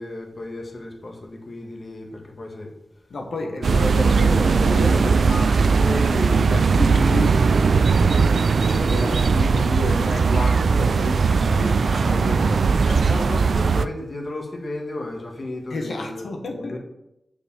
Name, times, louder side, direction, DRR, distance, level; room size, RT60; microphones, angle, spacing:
voice 1, 0.0-2.7 3.4-4.2 5.1-6.0 12.8-16.2 16.5-16.8, left 2 dB, 45° left, 1 dB, 1.7 m, -34 dB
voice 2, 3.1-5.3 5.8-12.9 15.7-16.8, left 2 dB, 85° left, 1 dB, 1.4 m, -30 dB
sound 1, 3.6-13.9, right 5 dB, 80° right, 0.4 m, -19 dB
6.8 x 5.1 x 7.0 m, 0.85 s
wide cardioid pair, 80°, 0 cm